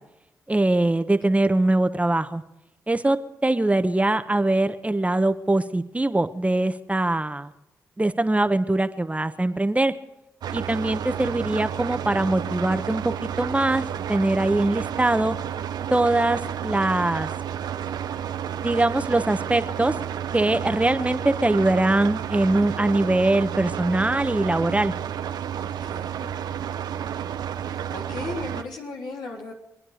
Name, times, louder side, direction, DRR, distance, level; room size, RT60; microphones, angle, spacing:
voice 1, 0.5-2.4 2.9-7.5 8.0-9.9 10.5-15.4 15.9-17.3 18.6-19.9 20.3-24.9, right 2 dB, 20° right, 10 dB, 1.1 m, -22 dB
sound 1, 10.4-28.6, right 9 dB, 80° right, 0.7 m, -31 dB
voice 2, 25.6-26.3 27.0-27.2 27.7-29.5, left 3 dB, 85° left, -1 dB, 3.4 m, -37 dB
25.0 x 9.7 x 5.0 m, 0.94 s
supercardioid pair, 50°, 7 cm